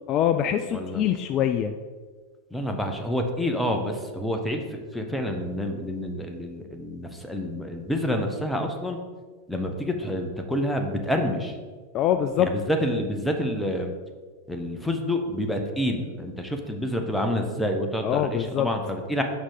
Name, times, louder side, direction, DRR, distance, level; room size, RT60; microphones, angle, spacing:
voice 1, 0.1-1.7 11.9-12.5 18.0-18.7, left 10 dB, 35° left, 8 dB, 0.3 m, -24 dB
voice 2, 0.7-1.0 2.5-9.0 9.5-11.5 12.4-13.9 14.5-19.2, equal, 5° left, 3 dB, 0.8 m, -28 dB
5.1 x 4.9 x 5.5 m, 1.5 s
figure-of-eight pair, 90°, 0 cm